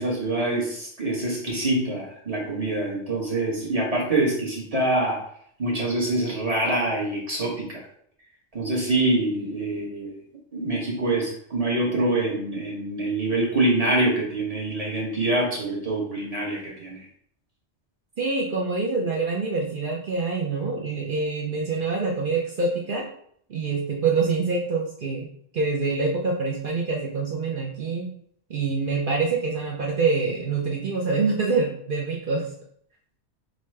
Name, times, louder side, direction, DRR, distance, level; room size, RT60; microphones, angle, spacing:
voice 1, 0.0-5.2 5.6-7.8 8.5-10.1 10.5-17.0, right 2 dB, 35° right, -4 dB, 1.1 m, -25 dB
voice 2, 18.2-23.1 23.5-25.3 25.5-28.1 28.5-32.5, right 4 dB, 55° right, -1 dB, 0.7 m, -25 dB
5.2 x 2.2 x 3.2 m, 0.64 s
omnidirectional pair, 1.2 m